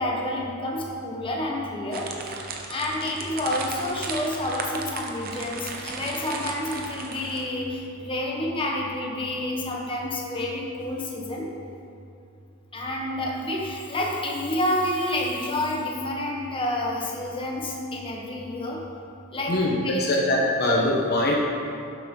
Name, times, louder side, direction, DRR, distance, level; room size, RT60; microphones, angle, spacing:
voice 1, 0.0-2.1 2.7-11.5 12.7-18.8 19.3-20.0, left 1 dB, 25° left, -2 dB, 1.2 m, -29 dB
sound 1, 1.9-7.6, right 4 dB, 45° right, 0.8 m, -36 dB
voice 2, 19.5-21.3, left 1 dB, 45° left, -2 dB, 1.0 m, -22 dB
11.0 x 7.5 x 3.8 m, 2.6 s
head